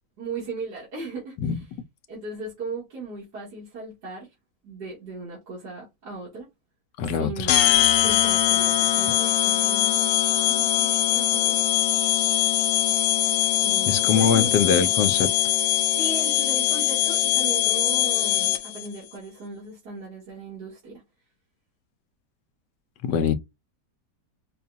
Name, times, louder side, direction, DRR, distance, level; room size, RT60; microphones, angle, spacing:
voice 1, 0.2-1.4 2.1-4.3 4.6-6.5 7.2-7.7 8.0-12.0 13.6-14.5 15.9-21.0, right 3 dB, 70° right, 2.4 m, -37 dB
voice 2, 7.0-7.5 13.9-15.3 23.0-23.3, left 7 dB, 85° left, 1.3 m, -22 dB
sound 1, 7.5-18.9, left 13 dB, 70° left, 1.0 m, -22 dB
5.5 x 2.3 x 2.7 m
omnidirectional pair, 1.8 m